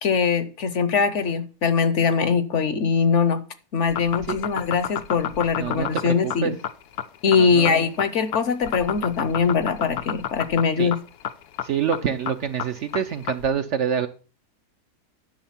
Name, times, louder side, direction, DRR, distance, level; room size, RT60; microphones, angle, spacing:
voice 1, 0.0-3.4 3.7-6.6 7.2-11.0, left 5 dB, 55° left, 12 dB, 0.9 m, -22 dB
sound 1, 3.8-13.5, left 10 dB, 80° left, 1.3 m, -30 dB
voice 2, 5.6-5.9 6.2-6.5 7.4-7.8 10.8-10.9 11.6-14.1, right 8 dB, 60° right, 10 dB, 0.8 m, -26 dB
10.5 x 6.6 x 5.7 m, 0.37 s
omnidirectional pair, 1.7 m